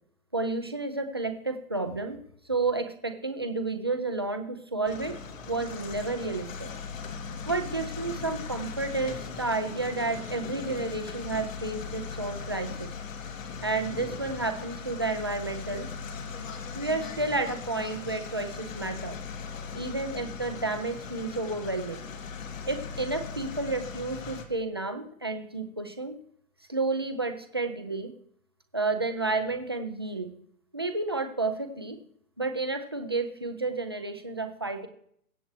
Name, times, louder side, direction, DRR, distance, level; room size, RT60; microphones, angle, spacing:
voice 1, 0.3-2.2 2.5-5.2 5.5-6.7 7.5-12.9 13.6-15.9 16.8-19.2 19.7-22.1 22.7-26.2 26.7-28.1 28.7-30.4 30.7-32.0 32.4-34.9, right 3 dB, 20° right, 6 dB, 0.3 m, -31 dB
sound 1, 4.9-24.5, left 5 dB, 60° left, 2.2 m, -39 dB
22.5 x 7.8 x 3.1 m, 0.68 s
hypercardioid pair, 145°, 44 cm